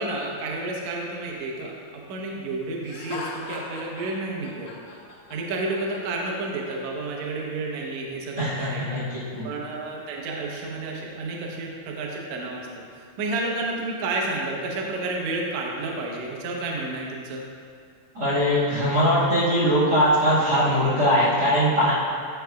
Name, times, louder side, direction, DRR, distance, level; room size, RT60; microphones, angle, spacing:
voice 1, 0.0-4.7 5.3-9.0 9.4-17.4, right 2 dB, 80° right, -1 dB, 1.6 m, -31 dB
Laughter, 2.8-6.8, left 4 dB, 70° left, 2.3 m, -39 dB
voice 2, 8.4-9.5 18.1-21.9, equal, 50° right, -10 dB, 1.9 m, -21 dB
9.5 x 6.4 x 2.3 m, 2.2 s
omnidirectional pair, 4.4 m